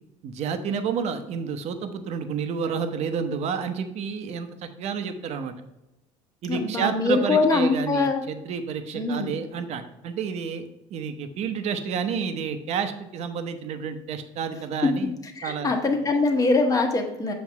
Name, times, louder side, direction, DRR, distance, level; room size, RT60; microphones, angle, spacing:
voice 1, 0.2-5.5 6.4-15.1 15.4-15.7, right 6 dB, 55° right, 8 dB, 0.8 m, -30 dB
voice 2, 6.5-8.2 8.9-9.4 14.8-14.9 15.2-17.3, left 3 dB, 25° left, 3 dB, 1.2 m, -23 dB
7.5 x 3.4 x 5.9 m, 0.94 s
cardioid pair, 120°, 13 cm